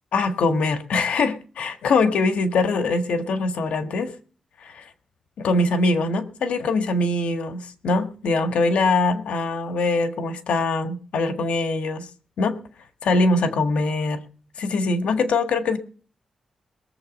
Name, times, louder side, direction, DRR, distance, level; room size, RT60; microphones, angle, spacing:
voice 1, 0.1-4.1 4.6-4.8 5.4-12.1 12.4-12.6 13.0-14.2 14.6-15.8, left 3 dB, 90° left, 7 dB, 1.6 m, -22 dB
22.0 x 7.5 x 5.3 m, 0.41 s
wide cardioid pair, 165°, 2 cm